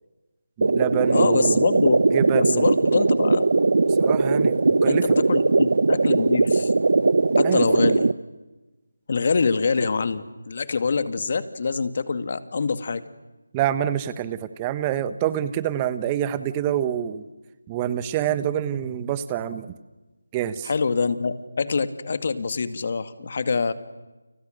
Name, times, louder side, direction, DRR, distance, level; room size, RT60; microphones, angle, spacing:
voice 1, 0.6-1.6 2.1-2.7 4.0-5.2 7.4-7.8 13.5-17.3 17.7-19.7 20.3-20.7, right 10 dB, 15° right, 14 dB, 1.2 m, -26 dB
sound 1, 0.6-8.1, right 3 dB, 60° right, 1.0 m, -20 dB
voice 2, 1.1-2.0 2.3-3.5 4.9-6.7 7.4-8.1 9.1-13.0 20.6-23.7, left 4 dB, 45° left, 11 dB, 2.1 m, -25 dB
30.0 x 29.5 x 6.6 m, 1.1 s
figure-of-eight pair, 165°, 0 cm